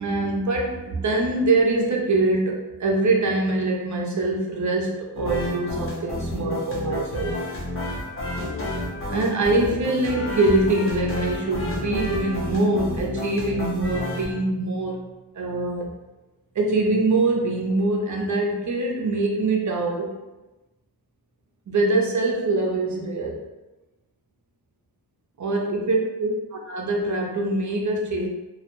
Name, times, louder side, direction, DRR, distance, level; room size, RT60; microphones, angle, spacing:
voice 1, 0.0-7.4 8.9-15.0 15.3-15.9 16.5-20.1 21.7-23.4 25.4-28.3, right 2 dB, 45° right, 0 dB, 0.5 m, -24 dB
sound 1, 5.1-14.3, left 1 dB, 35° left, 0.6 m, -30 dB
2.3 x 2.1 x 2.9 m, 1.1 s
wide cardioid pair, 115°, 41 cm